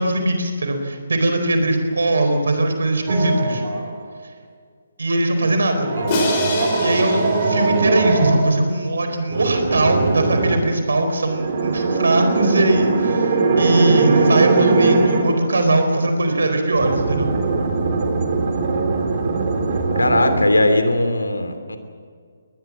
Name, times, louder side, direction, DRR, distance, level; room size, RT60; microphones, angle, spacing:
voice 1, 0.0-3.6 5.0-5.9 6.8-17.4, right 2 dB, 60° right, 6 dB, 4.5 m, -20 dB
sound 1, 3.1-4.0 5.8-8.4 9.3-10.6 11.3-15.4 16.7-20.4, right 3 dB, 40° right, 3.7 m, -20 dB
Crash cymbal, 6.1-8.3, left 3 dB, 30° left, 5.8 m, -27 dB
voice 2, 19.9-21.8, left 1 dB, 75° left, 8 dB, 2.9 m, -19 dB
22.0 x 19.5 x 7.7 m, 2.1 s
figure-of-eight pair, 140°, 0 cm